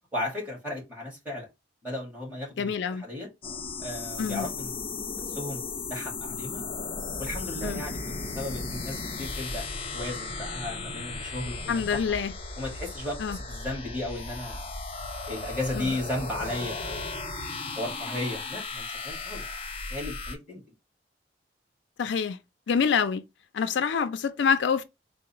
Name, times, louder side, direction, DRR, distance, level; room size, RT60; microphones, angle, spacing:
voice 1, 0.1-1.5 1.8-3.3 3.8-4.8 5.3-6.6 7.2-9.7 9.9-12.2 12.6-14.7 15.3-17.2 17.8-19.4 19.9-20.6, left 1 dB, 10° right, 1.8 m, -35 dB
voice 2, 2.6-3.0 4.2-4.5 7.6-7.8 11.7-12.3 13.2-13.4 15.7-15.9 22.0-22.4 22.7-23.2 23.5-24.8, left 6 dB, 80° left, 0.4 m, -26 dB
sound 1, 3.4-20.4, left 3 dB, 30° left, 0.7 m, -36 dB
3.8 x 2.0 x 4.1 m
head